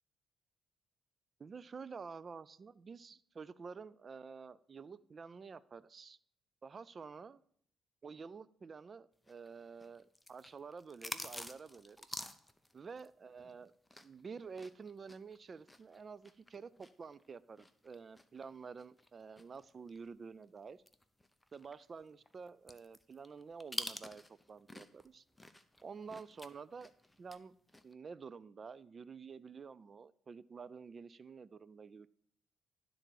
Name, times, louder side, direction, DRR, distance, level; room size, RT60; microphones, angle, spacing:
voice 1, 1.4-6.2 6.6-7.4 8.0-12.3 12.7-13.7 14.0-20.8 21.5-25.2 25.8-26.9 27.2-27.5 27.8-32.1, right 5 dB, 40° right, 17 dB, 0.3 m, -50 dB
sound 1, 9.2-14.2 14.5-20.1 20.4-20.5 20.9-25.1 25.3-27.4 27.7-27.9, left 1 dB, 10° left, 0.5 m, -48 dB
11.5 x 3.9 x 4.6 m, 0.65 s
cardioid pair, 90°, 0 cm